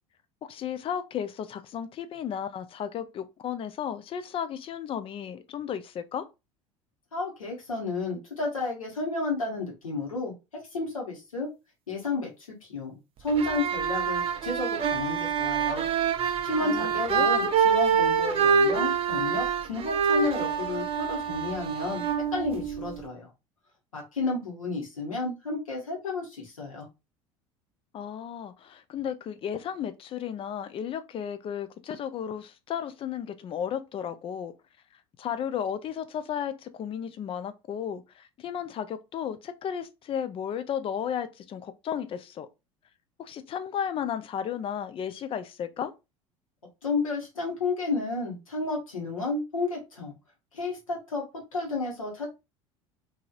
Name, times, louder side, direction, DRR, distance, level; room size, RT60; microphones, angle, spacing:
voice 1, 0.4-6.3 16.6-17.3 27.9-34.5 35.2-42.5 43.2-45.9, left 8 dB, 30° left, 0.4 m, -34 dB
voice 2, 7.1-10.3 10.7-11.5 11.9-12.3 12.6-15.8 16.4-22.1 22.3-23.3 23.9-26.9 46.8-50.1 50.5-51.2 51.5-52.3, left 3 dB, 85° left, 1.2 m, -31 dB
sound 1, 13.3-23.1, right 6 dB, 35° right, 0.5 m, -26 dB
2.8 x 2.6 x 2.4 m
figure-of-eight pair, 70°, 17 cm